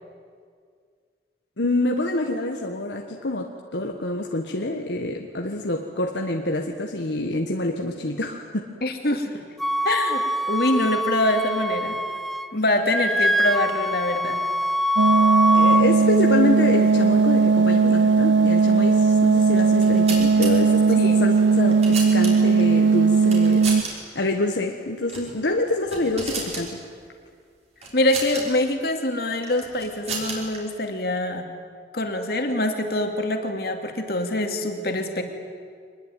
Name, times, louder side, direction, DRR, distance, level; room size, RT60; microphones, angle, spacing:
voice 1, 1.6-8.7 15.5-23.7 24.1-26.8, left 2 dB, 80° left, 2 dB, 1.5 m, -26 dB
voice 2, 8.8-9.3 9.8-12.0 12.5-14.4 21.0-21.3 27.9-31.5 31.9-35.2, left 1 dB, 60° left, 4 dB, 2.7 m, -24 dB
Wind instrument woodwind instrument, 9.6-12.5 12.8-15.8, equal, ahead, 0.5 m, -23 dB
sound 1, 15.0-23.8, right 5 dB, 85° right, 0.6 m, -18 dB
sound 2, 19.7-20.5 21.4-22.6 23.2-23.9 24.2-24.3 25.0-25.3 25.7-26.7 27.8-28.4 29.4-30.6, right 3 dB, 35° right, 5.7 m, -33 dB
24.5 x 21.0 x 9.3 m, 2.1 s
head